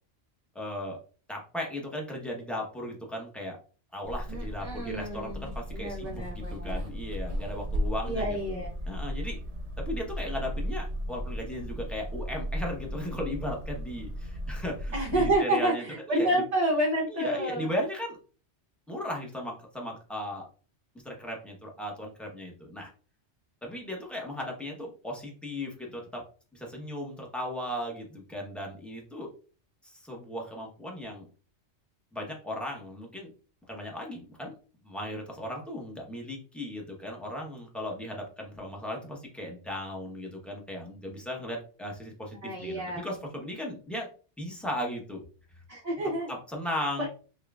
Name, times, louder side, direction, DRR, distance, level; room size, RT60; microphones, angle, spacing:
voice 1, 0.5-1.0 1.3-3.6 3.9-9.4 9.8-16.4 17.1-18.2 18.9-20.5 21.0-22.9 23.6-26.2 26.5-29.3 29.8-31.3 32.1-33.3 33.7-34.5 34.8-44.1 44.4-45.2 46.3-47.1, left 1 dB, ahead, -1 dB, 0.8 m, -36 dB
sound 1, 4.0-15.4, equal, 75° right, 1.0 m, -35 dB
voice 2, 4.3-6.8 8.0-8.7 14.9-17.7 42.4-43.0 45.7-46.3 47.0-47.1, right 1 dB, 40° right, -2 dB, 0.7 m, -29 dB
6.0 x 2.4 x 2.3 m, 0.38 s
omnidirectional pair, 1.2 m